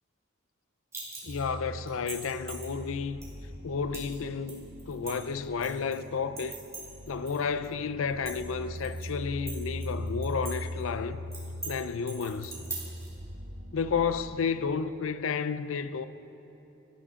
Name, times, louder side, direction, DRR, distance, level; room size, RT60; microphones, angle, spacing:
sound 1, 0.9-1.5 1.9-2.7 3.2-3.3 3.9-4.2 4.5-6.0 6.4-7.4 7.6-7.7 8.1-9.1 9.5-10.5 10.8-10.9 11.3-11.7 12.1-13.1, right 3 dB, 15° right, 3.4 m, -40 dB
voice 1, 1.2-3.2 3.6-6.6 7.1-11.2 11.7-12.6 13.7-16.1, left 5 dB, 80° left, 0.5 m, -31 dB
sound 2, 1.3-14.6, equal, 70° right, 1.1 m, -41 dB
19.0 x 13.5 x 3.7 m
head